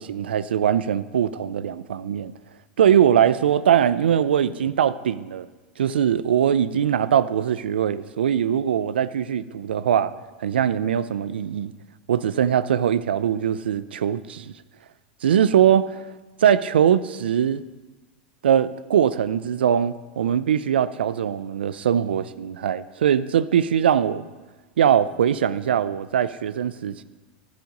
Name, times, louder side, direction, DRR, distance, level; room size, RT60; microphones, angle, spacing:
voice 1, 0.0-2.3 2.8-5.5 5.8-10.1 10.4-11.7 12.1-14.5 15.2-16.0 16.4-17.6 18.4-24.2 24.8-27.0, right 9 dB, 90° right, 14 dB, 0.4 m, -21 dB
11.5 x 5.1 x 5.2 m, 1.2 s
hypercardioid pair, 115°, 5 cm